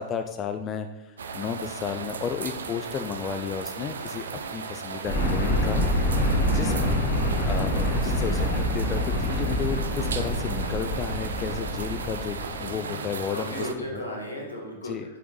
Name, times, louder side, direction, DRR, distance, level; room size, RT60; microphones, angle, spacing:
voice 1, 0.0-4.3 4.5-5.9 6.4-7.0 7.5-13.7 13.9-14.0 14.8-15.1, left 7 dB, 25° left, 7 dB, 0.3 m, -33 dB
sound 1, 1.2-13.7, right 5 dB, 70° right, 0.4 m, -36 dB
sound 2, 5.1-12.5, equal, 45° left, 2.0 m, -26 dB
voice 2, 12.6-15.2, equal, 80° left, -2 dB, 1.6 m, -36 dB
6.9 x 5.1 x 3.1 m, 1.1 s
figure-of-eight pair, 100°, 0 cm